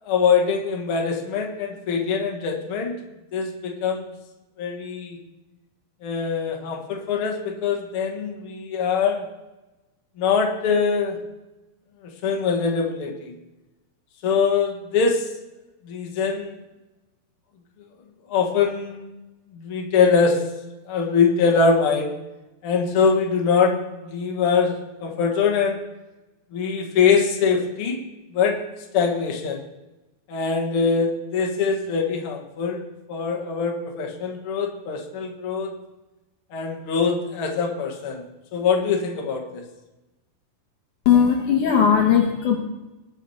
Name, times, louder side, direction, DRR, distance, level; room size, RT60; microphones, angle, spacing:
voice 1, 0.0-3.0 3.3-4.1 4.6-5.2 6.0-9.3 10.2-11.2 12.0-13.4 14.2-15.3 15.8-16.6 18.3-19.1 19.5-20.4 20.9-22.1 22.6-23.8 24.0-25.8 26.5-28.0 28.3-28.6 28.9-29.6 30.3-35.8 36.5-38.2 38.5-39.6, left 5 dB, 45° left, 1 dB, 2.0 m, -23 dB
voice 2, 41.1-42.6, left 8 dB, 65° left, 1 dB, 2.3 m, -18 dB
20.0 x 7.2 x 4.3 m, 1.0 s
omnidirectional pair, 4.3 m